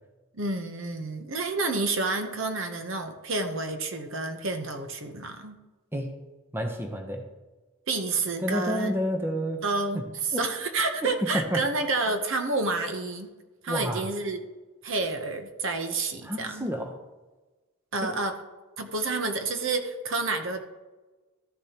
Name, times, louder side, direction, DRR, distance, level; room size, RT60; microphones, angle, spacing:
voice 1, 0.3-5.6 7.9-8.9 9.6-13.3 13.6-14.4 14.8-16.8 17.9-18.3 18.8-20.6, right 3 dB, 60° right, 6 dB, 0.9 m, -29 dB
voice 2, 6.5-7.2 8.4-9.6 10.3-10.4 11.3-11.6 13.7-14.0 16.2-16.9 18.0-18.1, equal, 10° right, 3 dB, 0.8 m, -29 dB
13.5 x 6.8 x 2.9 m, 1.2 s
head